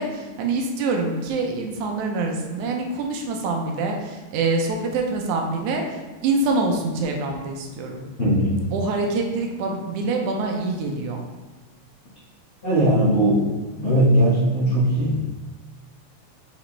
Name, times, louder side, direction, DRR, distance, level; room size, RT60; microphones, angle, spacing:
voice 1, 0.0-8.1 8.7-11.2, right 3 dB, 85° right, 2 dB, 2.2 m, -25 dB
voice 2, 12.6-13.4 13.8-15.3, right 1 dB, 25° left, -12 dB, 1.5 m, -19 dB
6.1 x 5.1 x 3.3 m, 1.2 s
omnidirectional pair, 3.3 m